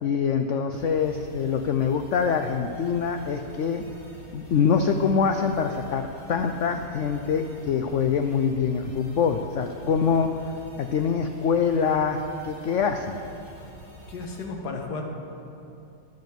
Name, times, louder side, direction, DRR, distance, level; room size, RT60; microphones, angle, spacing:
voice 1, 0.0-3.8 4.3-10.3 10.8-13.2, left 6 dB, 85° left, 6 dB, 0.6 m, -24 dB
sound 1, 0.7-14.4, equal, 40° left, 2.7 m, -46 dB
voice 2, 14.1-15.0, left 3 dB, 65° left, 2 dB, 1.8 m, -33 dB
10.5 x 9.0 x 7.4 m, 2.7 s
omnidirectional pair, 1.9 m